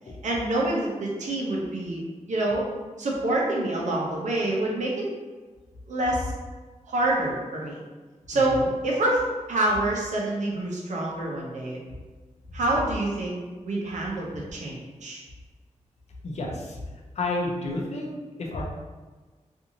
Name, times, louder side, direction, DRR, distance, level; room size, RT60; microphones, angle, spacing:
voice 1, 0.2-2.0 2.3-2.6 3.0-5.1 5.9-6.3 6.9-7.8 8.3-9.2 9.5-11.8 12.5-13.4 13.7-15.2, right 1 dB, 75° right, -3 dB, 0.7 m, -26 dB
voice 2, 8.3-8.7 16.2-16.8 17.1-18.6, left 2 dB, 60° left, 0 dB, 0.5 m, -31 dB
2.6 x 2.6 x 2.8 m, 1.3 s
wide cardioid pair, 175°, 12 cm